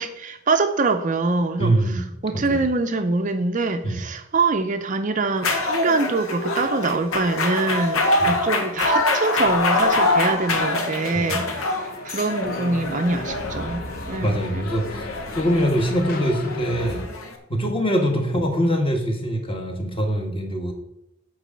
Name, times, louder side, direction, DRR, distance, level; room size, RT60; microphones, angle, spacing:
voice 1, 0.0-14.7, right 3 dB, 35° right, 0.6 m, -24 dB
voice 2, 1.6-2.1 2.3-2.6 3.8-4.0 8.2-8.3 11.1-11.6 13.3-13.4 14.2-15.1 15.3-17.0 17.5-20.7, equal, 25° left, 1.5 m, -23 dB
sound 1, 5.4-17.4, left 2 dB, 75° left, 1.4 m, -25 dB
sound 2, 9.8-17.1, left 2 dB, 45° left, 1.0 m, -37 dB
8.4 x 4.7 x 7.4 m
head